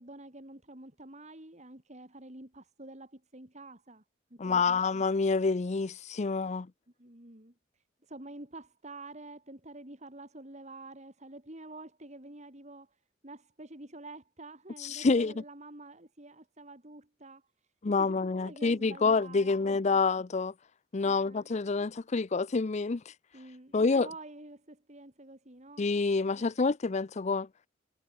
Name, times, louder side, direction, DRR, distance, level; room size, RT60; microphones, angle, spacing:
voice 1, 0.0-4.0 4.3-4.8 7.0-17.4 18.0-20.0 21.0-21.5 23.3-25.9 26.4-26.5, right 2 dB, 40° right, 4.1 m, -48 dB
voice 2, 4.4-6.7 14.8-15.3 17.8-20.5 20.9-23.0 23.7-24.1 25.8-27.5, left 4 dB, 35° left, 0.5 m, -27 dB
head